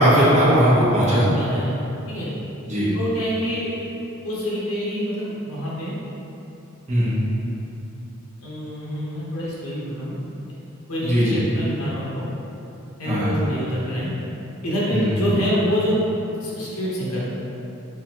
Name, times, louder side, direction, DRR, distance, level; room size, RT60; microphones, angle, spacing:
voice 1, 0.0-1.2 2.7-2.9 6.9-7.2 11.0-11.4 13.1-13.3 14.9-15.0, equal, 35° right, -9 dB, 0.9 m, -18 dB
voice 2, 1.3-2.3 2.9-3.7 4.2-5.9 8.4-10.1 10.9-12.2 13.0-14.1 14.6-16.0 16.4-17.3, equal, 80° left, -7 dB, 1.1 m, -26 dB
3.7 x 3.4 x 2.9 m, 2.9 s
head